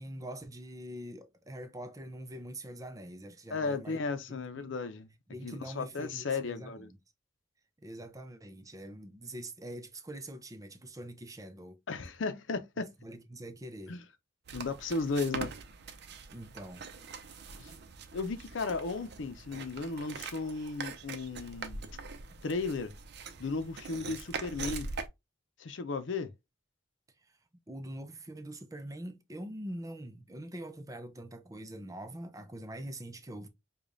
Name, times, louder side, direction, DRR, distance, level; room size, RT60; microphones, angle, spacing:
voice 1, 0.0-4.0 4.3-4.7 5.3-7.0 7.8-11.8 12.8-14.0 16.3-16.9 27.7-33.5, right 1 dB, 20° right, 0.5 m, -44 dB
voice 2, 3.5-5.1 5.4-6.9 11.9-12.9 13.9-14.0 14.5-15.5 17.6-17.7 18.1-21.9 22.4-22.9 23.4-24.9 25.6-26.3, left 4 dB, 85° left, 0.6 m, -35 dB
sound 1, 14.5-25.1, right 4 dB, 60° right, 0.6 m, -43 dB
4.9 x 2.4 x 2.5 m
head